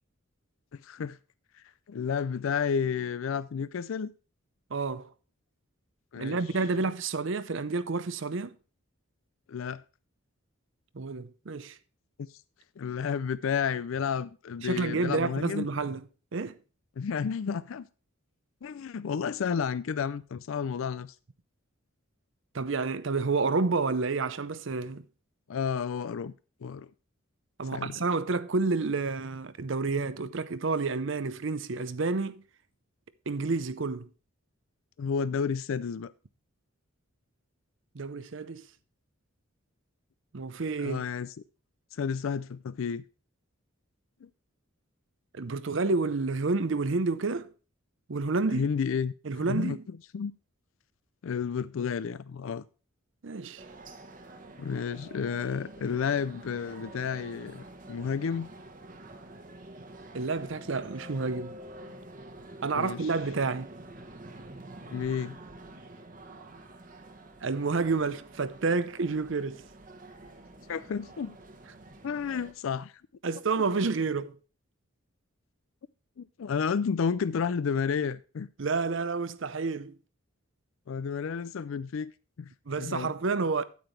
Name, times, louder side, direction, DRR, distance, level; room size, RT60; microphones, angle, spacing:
voice 1, 0.8-1.2 1.9-4.1 6.1-6.4 9.5-9.8 12.8-15.7 17.0-17.9 18.6-21.1 25.5-26.3 26.6-26.9 27.7-28.0 35.0-36.1 40.8-41.3 41.9-43.0 44.2-44.3 48.5-49.8 50.1-50.3 51.2-52.6 54.6-58.5 62.7-63.1 64.9-65.4 70.7-71.4 72.0-72.9 76.2-78.5 80.9-82.1 82.4-82.5 82.8-83.1, left 6 dB, 70° left, 0.4 m, -31 dB
voice 2, 4.7-5.1 6.2-8.5 10.9-11.8 14.6-16.0 16.3-16.6 22.5-25.0 27.6-32.4 33.3-34.1 37.9-38.6 40.3-41.0 45.3-47.5 48.1-48.7 49.2-49.8 53.2-53.6 60.1-61.6 62.6-63.7 67.4-69.6 73.2-74.4 78.6-80.0 82.7-83.6, right 4 dB, 60° right, 0.6 m, -29 dB
sound 1, 53.6-72.5, right 1 dB, 40° right, 1.1 m, -48 dB
9.3 x 8.9 x 3.2 m
head